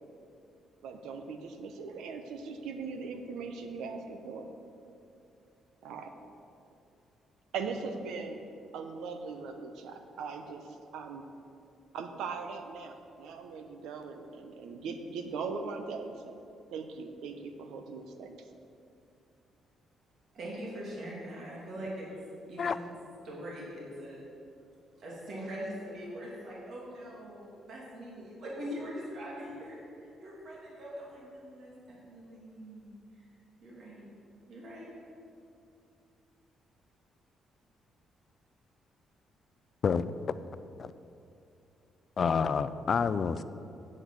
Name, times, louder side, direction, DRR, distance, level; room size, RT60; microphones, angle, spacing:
voice 1, 0.8-4.5 5.8-6.1 7.5-8.4 8.7-11.3 11.9-16.4 16.7-18.5, right 4 dB, 85° right, 6 dB, 0.9 m, -40 dB
voice 2, 20.3-22.1 22.5-22.8 23.2-24.2 25.0-33.3 33.6-34.1 34.5-34.9, equal, 60° right, -4 dB, 2.7 m, -42 dB
voice 3, 42.2-43.4, left 6 dB, 50° left, 14 dB, 0.4 m, -28 dB
8.7 x 8.0 x 6.3 m, 2.7 s
cardioid pair, 90°, 0 cm